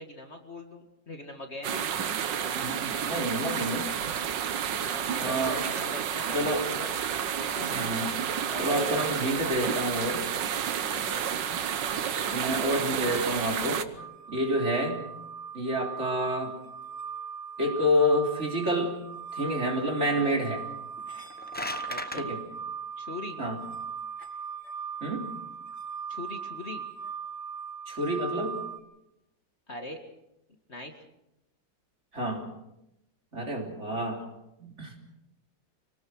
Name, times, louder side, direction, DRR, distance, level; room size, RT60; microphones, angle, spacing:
voice 1, 0.0-1.9 4.8-6.9 7.4-7.7 8.5-9.9 10.8-11.3 21.9-22.3 23.0-23.4 26.1-26.8 29.7-30.0 30.7-30.9, left 2 dB, 40° left, 4 dB, 2.1 m, -40 dB
sound 1, 1.6-13.8, right 8 dB, 90° right, 1.8 m, -31 dB
voice 2, 2.5-3.9 5.2-5.6 6.3-6.6 7.7-8.2 8.6-10.3 12.3-13.8 14.3-15.1 15.5-16.5 17.6-19.0 19.3-20.6 22.2-22.4 23.4-23.6 25.0-25.3 27.9-28.6 32.1-32.5 33.3-34.2 34.6-34.9, equal, 40° right, 1 dB, 4.0 m, -28 dB
sound 2, 14.0-28.8, right 6 dB, 65° left, 3.1 m, -39 dB
sound 3, 21.1-22.2, left 1 dB, 10° left, 0.7 m, -36 dB
26.5 x 19.0 x 6.3 m, 0.88 s
omnidirectional pair, 1.9 m